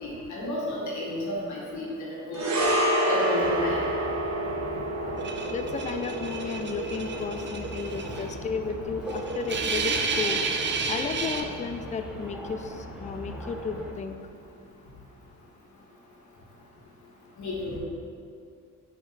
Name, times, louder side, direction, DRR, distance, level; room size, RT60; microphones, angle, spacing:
voice 1, 0.0-2.5 3.1-3.8 17.4-17.8, left 1 dB, 70° left, -6 dB, 1.7 m, -32 dB
sound 1, 2.3-10.8 11.1-11.3, right 1 dB, 60° right, 1.2 m, -30 dB
sound 2, 3.4-13.9, equal, 5° right, 1.4 m, -40 dB
sound 3, 5.2-8.3 8.7-8.8 9.1-11.4, right 4 dB, 40° right, 0.7 m, -31 dB
voice 2, 5.5-10.4 10.9-14.2, left 5 dB, 25° left, 7 dB, 0.4 m, -33 dB
6.3 x 5.1 x 4.0 m, 2.3 s
cardioid pair, 90°, 30 cm